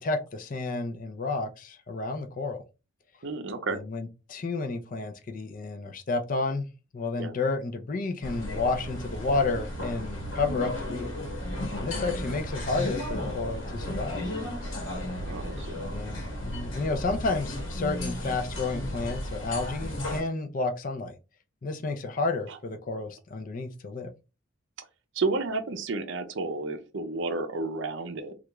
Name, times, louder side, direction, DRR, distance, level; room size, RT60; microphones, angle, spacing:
voice 1, 0.0-2.6 3.7-6.7 6.9-11.1 11.7-14.2 15.9-21.1 21.6-24.1, left 3 dB, 40° left, 0.5 m, -31 dB
voice 2, 3.2-3.8 7.2-7.3 15.1-15.8 25.1-28.4, right 3 dB, 65° right, 0.5 m, -31 dB
sound 1, 8.2-20.2, left 1 dB, 70° left, 1.1 m, -34 dB
3.4 x 2.4 x 3.0 m
head